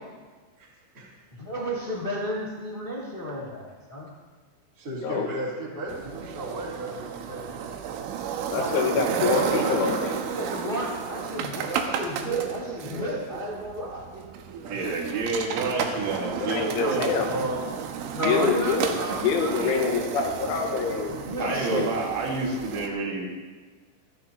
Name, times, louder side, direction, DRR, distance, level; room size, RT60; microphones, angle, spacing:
voice 1, 1.4-4.1 8.5-9.9 10.3-14.0 16.8-16.9 18.1-19.5 21.1-21.9, equal, 55° left, -5 dB, 0.5 m, -32 dB
voice 2, 4.8-7.7 14.6-14.9 16.3-17.6, right 1 dB, 20° right, -7 dB, 3.2 m, -35 dB
sound 1, 5.9-22.9, right 7 dB, 90° right, 3.5 m, -32 dB
voice 3, 8.5-10.1 16.4-17.3 18.2-18.9 19.2-21.8, left 6 dB, 80° left, 1 dB, 3.8 m, -26 dB
voice 4, 14.7-17.1 19.6-20.0 21.4-23.3, right 3 dB, 75° right, 0 dB, 4.2 m, -29 dB
27.5 x 10.5 x 2.9 m, 1.4 s
omnidirectional pair, 5.6 m